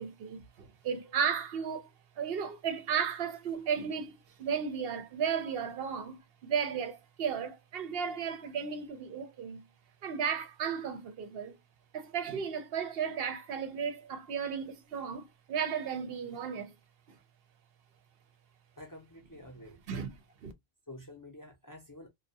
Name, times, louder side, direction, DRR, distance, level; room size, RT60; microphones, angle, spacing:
voice 1, 0.0-1.9 2.2-9.6 10.0-11.6 11.9-16.7 17.1-17.2 19.9-20.1 20.4-20.5, right 7 dB, 70° right, 0.8 m, -34 dB
voice 2, 18.8-19.8 20.9-22.1, left 1 dB, 25° left, 0.5 m, -49 dB
2.2 x 2.1 x 2.6 m
omnidirectional pair, 1.0 m